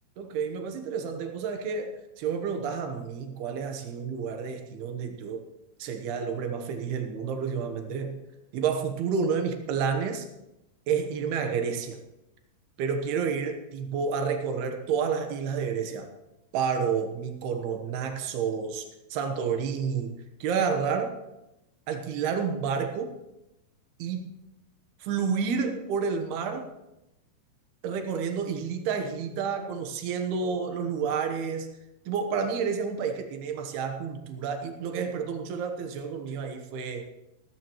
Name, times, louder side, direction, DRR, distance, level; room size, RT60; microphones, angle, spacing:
voice 1, 0.2-5.4 5.8-8.2 8.5-10.3 10.9-12.0 12.8-16.1 16.5-20.1 20.4-21.1 21.9-23.1 24.0-24.3 25.0-26.7 27.8-31.7 32.1-37.1, right 6 dB, 70° right, 5 dB, 2.6 m, -30 dB
17.0 x 14.5 x 3.1 m, 0.93 s
omnidirectional pair, 5.8 m